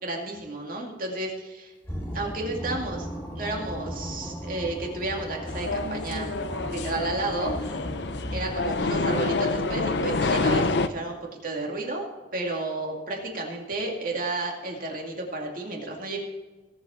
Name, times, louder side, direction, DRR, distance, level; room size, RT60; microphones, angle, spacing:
voice 1, 0.0-1.3 2.1-3.1 3.3-6.3 6.7-7.8 8.3-16.2, right 2 dB, 50° right, 0 dB, 2.3 m, -32 dB
sound 1, 1.8-9.1, equal, 10° left, 2.4 m, -36 dB
sound 2, 5.5-10.9, left 3 dB, 65° left, 0.6 m, -27 dB
18.0 x 7.4 x 4.3 m, 1.2 s
head